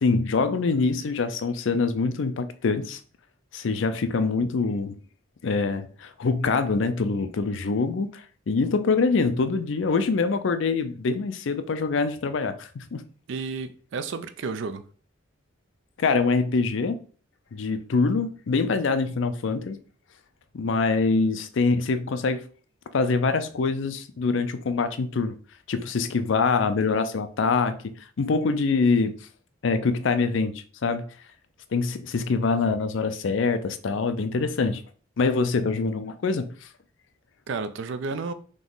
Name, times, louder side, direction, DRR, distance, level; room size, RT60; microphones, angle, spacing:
voice 1, 0.0-3.0 3.5-5.0 5.4-13.0 16.0-17.0 17.5-19.8 20.5-22.4 22.9-25.3 25.7-27.7 28.2-29.1 29.6-31.1 31.7-34.8 35.2-36.5, left 4 dB, 65° left, 0.4 m, -24 dB
voice 2, 13.3-14.8 37.5-38.3, right 4 dB, 60° right, 0.4 m, -31 dB
3.8 x 3.0 x 3.9 m
head